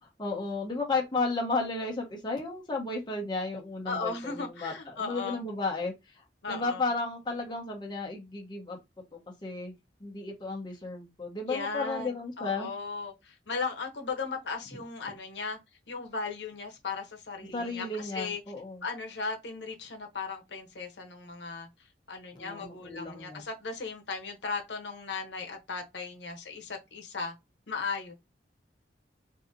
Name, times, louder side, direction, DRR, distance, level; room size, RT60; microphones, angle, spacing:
voice 1, 0.2-5.9 6.5-8.8 9.4-9.7 10.0-12.7 17.5-18.8 22.3-23.4, left 3 dB, 25° left, 0.9 m, -33 dB
voice 2, 3.9-5.4 6.4-6.9 11.5-15.6 15.9-18.4 18.8-21.7 22.1-27.3 27.7-28.1, left 4 dB, 80° left, 0.9 m, -37 dB
3.8 x 2.7 x 2.6 m
head